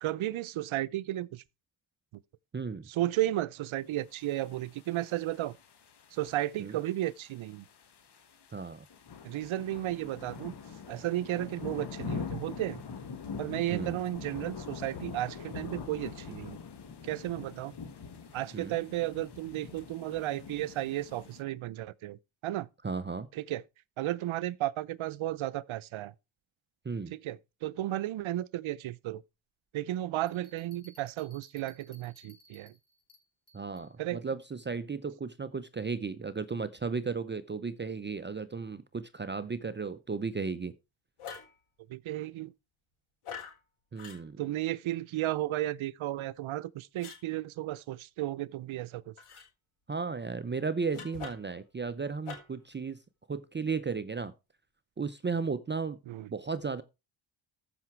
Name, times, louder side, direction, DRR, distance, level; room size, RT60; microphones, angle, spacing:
voice 1, 0.0-1.4 2.9-5.6 6.1-7.7 9.2-10.5 10.9-12.8 13.4-16.6 17.0-17.7 18.3-22.7 23.3-23.6 24.0-26.1 27.1-29.2 29.7-32.7 34.0-34.2 41.9-42.5 44.4-49.1 56.1-56.3, right 14 dB, 75° right, 0.7 m, -34 dB
voice 2, 2.5-2.9 6.6-6.8 8.5-8.9 13.7-14.0 18.5-18.8 22.8-23.3 26.8-27.1 33.5-40.7 43.9-44.4 49.9-53.0 53.3-54.3 55.0-56.0 56.3-56.8, right 5 dB, 25° right, 0.6 m, -35 dB
sound 1, 4.2-21.4, left 6 dB, 55° left, 1.8 m, -44 dB
Bell, 30.3-33.9, equal, 30° left, 4.8 m, -61 dB
sound 2, 41.2-41.6 43.2-43.6 44.0-44.2 47.0-47.2 49.2-49.5 50.9-51.6 52.2-52.6, left 6 dB, 85° left, 4.3 m, -44 dB
14.5 x 5.9 x 4.5 m
cardioid pair, 100°, 48 cm